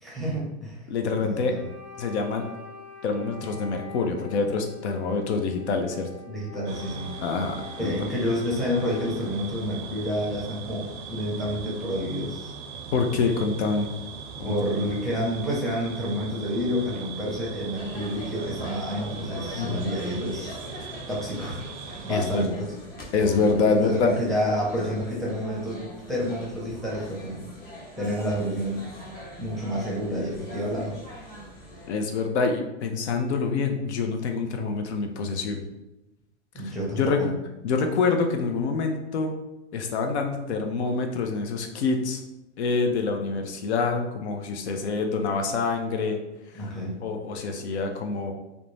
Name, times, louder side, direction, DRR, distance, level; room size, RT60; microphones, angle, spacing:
voice 1, 0.0-0.8 1.2-1.6 6.3-7.1 7.8-12.5 14.4-21.6 22.0-22.6 23.7-25.8 26.1-27.5 28.0-28.9 29.4-31.0 36.5-37.3 46.5-46.9, equal, ahead, -7 dB, 0.7 m, -29 dB
voice 2, 0.9-1.5 2.0-2.5 3.0-6.1 7.2-8.1 12.9-13.9 14.4-14.6 19.5-19.8 20.8-20.9 22.1-22.5 23.1-24.1 31.9-35.6 36.6-37.2 37.6-39.3 39.7-42.2 42.6-46.2 46.5-46.7 47.0-48.3, left 4 dB, 70° left, 4 dB, 0.5 m, -26 dB
Wind instrument woodwind instrument, 1.5-9.5, left 6 dB, 20° left, 1.0 m, -45 dB
sound 1, 6.7-22.4, right 5 dB, 45° right, 0.4 m, -40 dB
sound 2, 17.7-31.9, equal, 40° left, 1.0 m, -41 dB
2.5 x 2.1 x 3.1 m, 0.96 s
hypercardioid pair, 120°, 35 cm